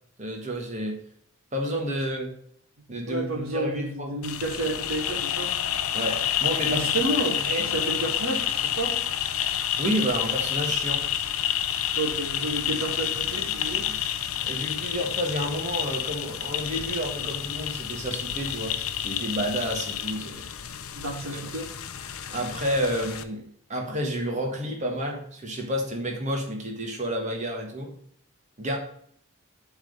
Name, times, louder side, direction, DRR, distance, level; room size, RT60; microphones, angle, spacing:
voice 1, 0.2-1.0 1.5-2.4 2.9-4.2 5.9-6.8 7.4-7.7 9.8-11.1 14.4-20.4 21.3-21.5 22.3-27.9 28.6-28.8, equal, 35° right, 1 dB, 1.5 m, -30 dB
voice 2, 3.1-5.5 6.6-8.9 11.9-13.9 20.9-21.7, right 2 dB, 75° right, 2 dB, 1.7 m, -30 dB
sound 1, 4.2-23.2, left 10 dB, 75° left, 0.6 m, -29 dB
7.4 x 3.6 x 6.5 m, 0.66 s
head